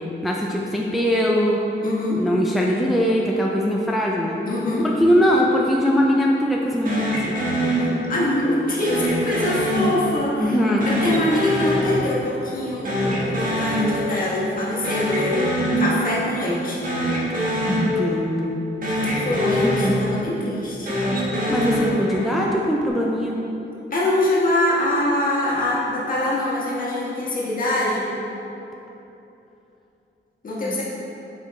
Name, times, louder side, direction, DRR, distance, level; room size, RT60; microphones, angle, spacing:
voice 1, 0.2-1.6 2.2-4.4 4.8-7.3 10.4-10.9 15.6-15.9 17.7-18.6 19.6-19.8 21.5-23.4 30.6-30.8, equal, ahead, -2 dB, 0.4 m, -21 dB
voice 2, 1.8-2.2 4.5-4.9 7.8-10.6 10.9-15.5 15.8-16.8 18.8-20.9 23.9-28.0 30.4-30.8, left 1 dB, 45° left, -6 dB, 1.5 m, -24 dB
sound 1, 6.9-8.4 8.8-10.4 10.8-12.6 12.8-14.4 14.7-16.4 16.8-18.6 18.8-20.4 20.8-22.5, equal, 45° right, 1.4 m, -24 dB
7.7 x 5.0 x 3.1 m, 2.9 s
wide cardioid pair, 135°, 20 cm